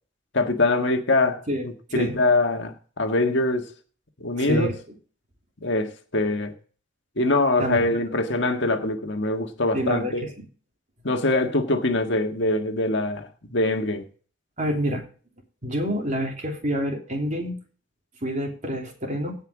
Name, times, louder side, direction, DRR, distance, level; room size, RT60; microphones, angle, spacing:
voice 1, 0.3-3.7 4.2-4.7 5.6-6.5 7.2-10.2 11.0-14.0, left 2 dB, 60° left, 1.7 m, -23 dB
voice 2, 1.5-2.2 4.4-4.7 7.6-8.0 9.7-10.3 14.6-15.0 15.6-17.5 18.2-19.4, equal, 40° right, 3.1 m, -27 dB
17.0 x 5.6 x 5.0 m
head